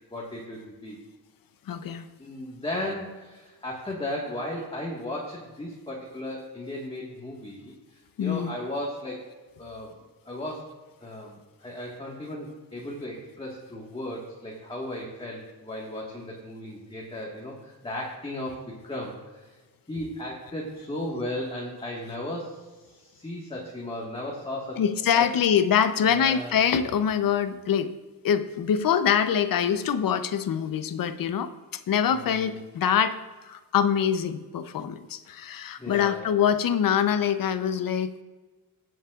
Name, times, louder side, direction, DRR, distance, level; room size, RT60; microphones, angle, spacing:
voice 1, 0.1-1.0 2.2-7.7 8.2-9.2 9.6-9.9 10.2-10.7 11.0-18.6 18.8-19.5 19.9-24.8 25.1-25.3 26.0-26.5 32.1-32.5 35.8-36.3, left 1 dB, 15° left, -3 dB, 1.6 m, -35 dB
voice 2, 1.7-2.0 8.2-8.5 24.8-27.9 28.2-33.2 33.4-38.1, left 8 dB, 60° left, 11 dB, 0.7 m, -24 dB
18.0 x 7.3 x 2.4 m, 1.3 s
cardioid pair, 110°, 38 cm